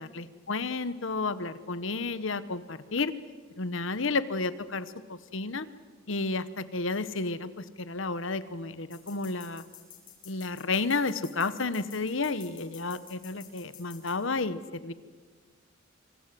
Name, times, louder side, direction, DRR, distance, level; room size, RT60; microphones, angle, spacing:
voice 1, 0.0-3.1 3.6-5.7 6.1-9.6 10.2-14.9, left 3 dB, 65° left, 14 dB, 1.1 m, -32 dB
sound 1, 8.9-14.2, left 10 dB, 45° left, 6.9 m, -50 dB
26.0 x 26.0 x 7.7 m, 1.5 s
head